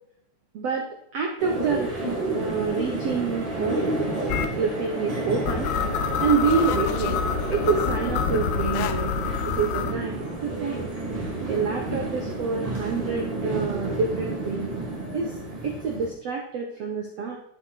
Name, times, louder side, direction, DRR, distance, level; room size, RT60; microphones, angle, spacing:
voice 1, 0.5-1.9 2.3-3.9 4.6-5.7 6.2-7.2 7.5-9.1 9.4-10.9 11.5-14.7 15.1-15.4 15.6-17.4, right 5 dB, 90° right, 1 dB, 1.4 m, -27 dB
sound 1, 1.4-16.1, right 2 dB, 15° right, 1.3 m, -30 dB
sound 2, 4.3-4.5 5.5-9.9, left 9 dB, 80° left, 2.2 m, -27 dB
11.5 x 7.6 x 4.1 m, 0.71 s
omnidirectional pair, 4.8 m